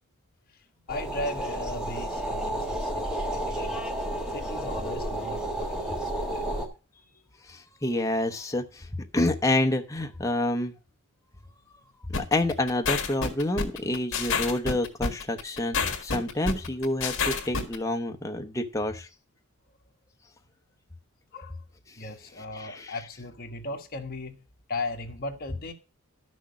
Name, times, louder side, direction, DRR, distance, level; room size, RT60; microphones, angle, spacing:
voice 1, 0.5-3.9 4.3-7.2 21.3-21.6 22.0-24.4 24.7-25.7, left 2 dB, 45° left, 1.6 m, -38 dB
sound 1, 0.9-6.7, right 1 dB, 5° right, 1.4 m, -31 dB
voice 2, 7.5-10.7 12.1-19.1 21.9-22.0 22.6-22.9, left 1 dB, 15° left, 0.8 m, -28 dB
sound 2, 12.1-17.8, left 5 dB, 60° left, 1.8 m, -28 dB
12.0 x 6.4 x 4.9 m
head